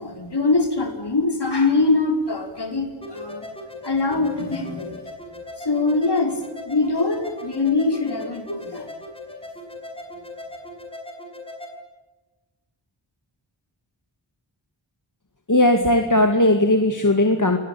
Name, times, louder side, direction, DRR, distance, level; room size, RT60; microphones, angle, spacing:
voice 1, 0.0-3.5 3.8-5.0 5.6-8.9, left 3 dB, 55° left, 4 dB, 5.2 m, -23 dB
sound 1, 3.0-11.7, left 2 dB, 10° left, 6.0 m, -38 dB
voice 2, 15.5-17.6, left 1 dB, 40° left, 5 dB, 2.4 m, -18 dB
28.0 x 19.5 x 8.6 m, 1.1 s
wide cardioid pair, 65°, 48 cm